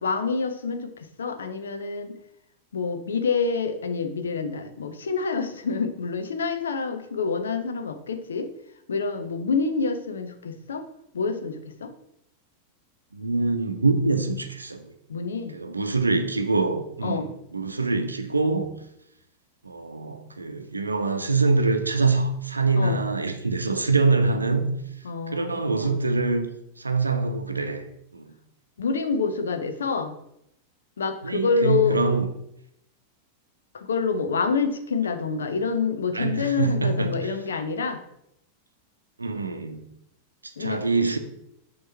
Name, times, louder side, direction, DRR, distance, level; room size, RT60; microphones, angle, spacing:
voice 1, 0.0-2.2 2.7-8.5 8.9-10.8 11.1-11.9 15.1-15.6 17.0-17.3 22.8-23.0 25.0-26.0 28.8-30.2 31.0-32.0 33.7-38.0 40.6-40.8, left 5 dB, 70° left, 8 dB, 0.7 m, -27 dB
voice 2, 13.1-14.8 15.5-18.7 19.6-24.7 25.3-26.5 26.8-27.8 28.1-28.2 31.2-32.3 36.1-37.3 39.2-39.8 40.6-41.2, right 3 dB, 80° right, 7 dB, 0.6 m, -24 dB
6.2 x 3.1 x 5.6 m, 0.77 s
figure-of-eight pair, 90°, 0 cm